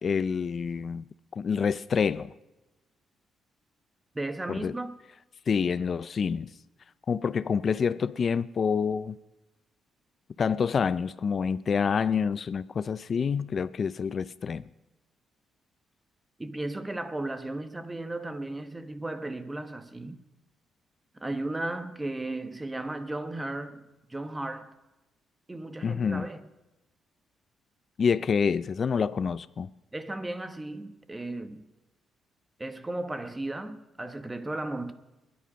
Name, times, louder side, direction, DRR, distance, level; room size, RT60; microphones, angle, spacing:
voice 1, 0.0-1.0 1.4-2.3 4.5-4.7 5.5-6.5 7.1-9.2 10.4-14.7 25.8-26.3 28.0-29.7, left 6 dB, 45° left, 0.4 m, -27 dB
voice 2, 4.1-4.9 16.4-20.2 21.2-24.7 25.5-26.4 29.9-31.7 32.6-34.9, right 2 dB, 15° right, 1.1 m, -35 dB
20.0 x 10.5 x 5.3 m
cardioid pair, 90°, 0 cm